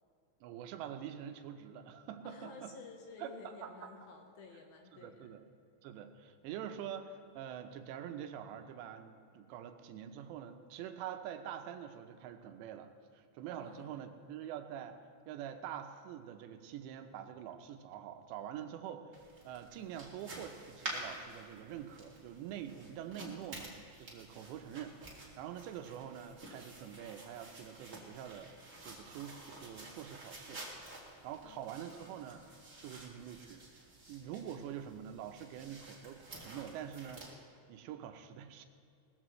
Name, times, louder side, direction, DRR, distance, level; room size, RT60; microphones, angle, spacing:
voice 1, 0.4-2.8 3.2-3.9 4.9-5.4 5.8-15.0 15.3-19.1 19.4-23.7 24.0-28.5 28.8-30.7 31.2-32.4 32.8-33.6 34.1-37.3 37.7-38.7, right 9 dB, 85° right, 7 dB, 3.0 m, -45 dB
voice 2, 2.2-5.3 13.6-14.1 31.4-32.2, left 4 dB, 70° left, 2 dB, 2.5 m, -53 dB
sound 1, 19.1-37.3, right 2 dB, 30° right, 1.4 m, -50 dB
19.5 x 14.0 x 3.1 m, 2.3 s
omnidirectional pair, 5.0 m